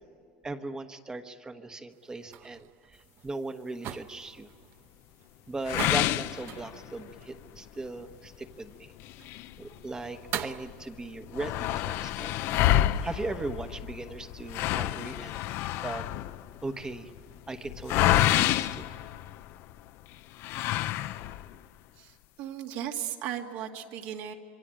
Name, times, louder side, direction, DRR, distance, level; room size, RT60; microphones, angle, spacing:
voice 1, 0.4-2.7 3.2-4.5 5.5-8.9 9.6-12.3 13.0-15.4 15.8-16.1 16.6-17.1 17.5-18.9, right 2 dB, 15° right, 9 dB, 1.2 m, -38 dB
sound 1, 1.9-10.7, right 10 dB, 50° right, 0.9 m, -43 dB
sound 2, 5.7-7.1 7.6-7.7 8.1-8.2 9.0-10.3 10.7-10.8 11.0-19.7 20.4-21.6, left 14 dB, 55° left, 0.7 m, -28 dB
voice 2, 22.0-24.3, right 10 dB, 65° right, 3 dB, 2.4 m, -36 dB
26.5 x 22.5 x 8.9 m, 2.4 s
supercardioid pair, 135°, 5 cm